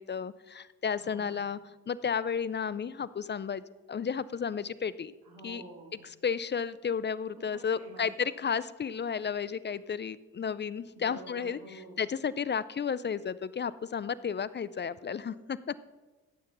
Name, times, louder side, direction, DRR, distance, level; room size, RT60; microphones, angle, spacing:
voice 1, 0.0-1.6 1.9-3.6 3.9-5.1 5.4-5.6 6.2-11.6 12.0-15.8, left 6 dB, 25° left, 17 dB, 0.5 m, -33 dB
voice 2, 0.9-1.4 5.2-6.0 7.4-8.0 11.0-12.0, right 1 dB, 60° right, -3 dB, 3.0 m, -48 dB
15.5 x 8.8 x 4.0 m, 1.2 s
hypercardioid pair, 50°, 42 cm